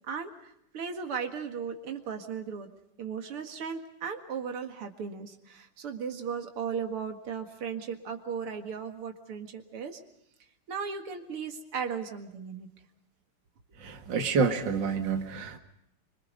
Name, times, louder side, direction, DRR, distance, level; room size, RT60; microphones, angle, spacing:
voice 1, 0.0-2.7 3.0-10.0 10.7-12.7, right 6 dB, 85° right, 5 dB, 2.8 m, -36 dB
voice 2, 13.8-15.6, right 5 dB, 55° right, 5 dB, 2.5 m, -28 dB
27.0 x 25.5 x 5.3 m, 0.78 s
omnidirectional pair, 2.4 m